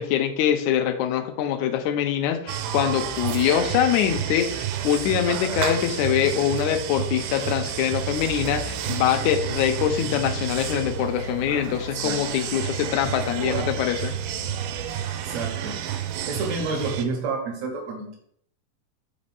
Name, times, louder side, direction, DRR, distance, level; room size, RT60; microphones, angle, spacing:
voice 1, 0.0-14.2, left 10 dB, 80° left, 8 dB, 1.8 m, -24 dB
sound 1, 2.5-17.1, right 10 dB, 85° right, 2.2 m, -30 dB
sound 2, 6.6-6.8 7.7-15.7, left 2 dB, 45° right, 1.0 m, -39 dB
voice 2, 11.9-12.5 15.2-15.8 16.3-18.2, right 4 dB, 70° right, 1 dB, 2.1 m, -30 dB
5.1 x 3.5 x 5.5 m, 0.67 s
omnidirectional pair, 3.6 m